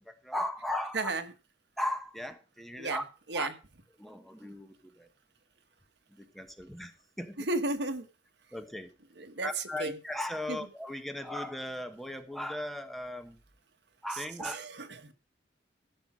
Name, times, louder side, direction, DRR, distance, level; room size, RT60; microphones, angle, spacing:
voice 1, 0.2-1.1 1.8-3.0 3.3-3.5 4.0-5.1 6.2-6.9 7.2-7.5 8.5-8.9 9.4-13.4 14.0-14.6, left 1 dB, ahead, 1.1 m, -37 dB
voice 2, 7.5-8.0 9.2-9.5 9.8-9.9 10.5-10.6 14.4-15.1, right 2 dB, 65° right, 1.4 m, -33 dB
15.0 x 6.0 x 6.1 m
head